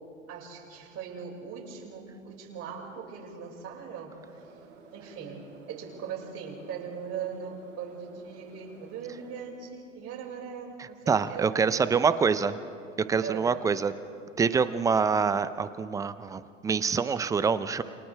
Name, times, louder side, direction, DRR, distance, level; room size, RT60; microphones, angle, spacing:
voice 1, 0.3-4.4 4.9-12.2 13.2-13.6, right 6 dB, 35° right, -1 dB, 5.4 m, -40 dB
sound 1, 4.2-9.4, right 4 dB, 75° right, 7.6 m, -53 dB
voice 2, 10.8-12.6 13.1-13.9 14.4-17.8, right 5 dB, 10° right, 14 dB, 0.4 m, -26 dB
29.5 x 28.5 x 3.4 m, 2.5 s
hypercardioid pair, 105°, 40 cm